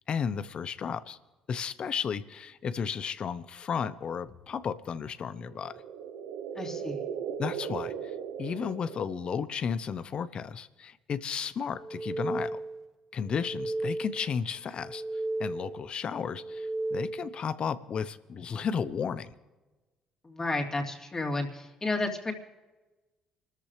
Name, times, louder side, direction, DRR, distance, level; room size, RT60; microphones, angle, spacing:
voice 1, 0.1-1.2 1.5-5.7 7.4-12.6 13.1-19.3, left 7 dB, 50° left, 15 dB, 0.8 m, -33 dB
sound 1, 5.3-9.6, right 7 dB, 85° right, 0.9 m, -38 dB
voice 2, 6.5-7.0 20.2-22.3, left 2 dB, 25° left, 2 dB, 3.1 m, -32 dB
sound 2, 11.7-12.9 13.2-14.4 14.7-15.9 16.3-17.4, right 2 dB, 25° right, 2.1 m, -35 dB
26.0 x 13.5 x 3.3 m, 1.2 s
supercardioid pair, 65°, 2 cm